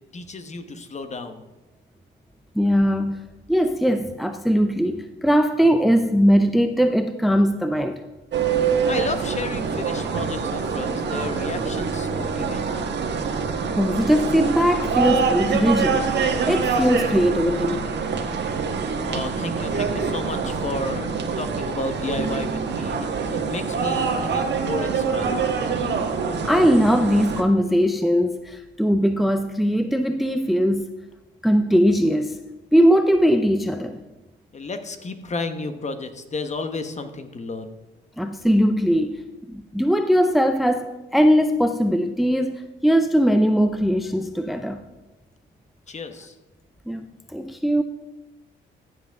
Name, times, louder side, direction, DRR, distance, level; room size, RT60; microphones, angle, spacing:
voice 1, 0.1-1.4 8.9-12.9 19.1-23.1 23.5-25.4 34.5-37.7 45.9-46.3, left 3 dB, 35° left, 1.2 m, -32 dB
voice 2, 2.6-3.2 3.5-8.0 13.8-17.8 26.4-30.8 31.4-32.4 32.7-34.0 38.2-39.2 39.5-44.8 46.9-47.8, equal, ahead, 0.6 m, -20 dB
sound 1, 8.3-27.4, right 5 dB, 60° right, 1.6 m, -25 dB
15.0 x 7.7 x 3.6 m
cardioid pair, 90°, 20 cm